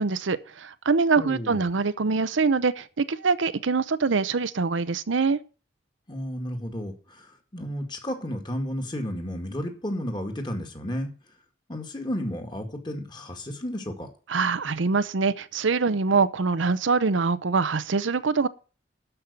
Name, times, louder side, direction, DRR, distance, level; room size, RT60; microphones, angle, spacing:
voice 1, 0.0-5.4 14.3-18.5, right 4 dB, 80° right, 0.7 m, -24 dB
voice 2, 1.2-1.7 6.1-11.1 11.7-14.1, equal, 25° left, 2.2 m, -32 dB
12.5 x 5.5 x 8.2 m
head